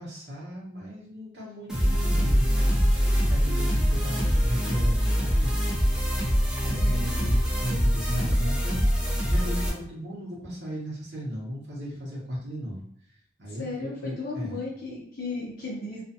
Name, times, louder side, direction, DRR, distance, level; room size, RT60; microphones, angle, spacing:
voice 1, 0.0-5.5 6.6-12.8 13.4-14.6, equal, 80° right, -5 dB, 0.9 m, -35 dB
sound 1, 1.7-9.7, equal, 5° right, 0.7 m, -24 dB
voice 2, 13.5-16.0, left 3 dB, 55° left, -4 dB, 0.6 m, -35 dB
2.4 x 2.3 x 2.7 m, 0.64 s
head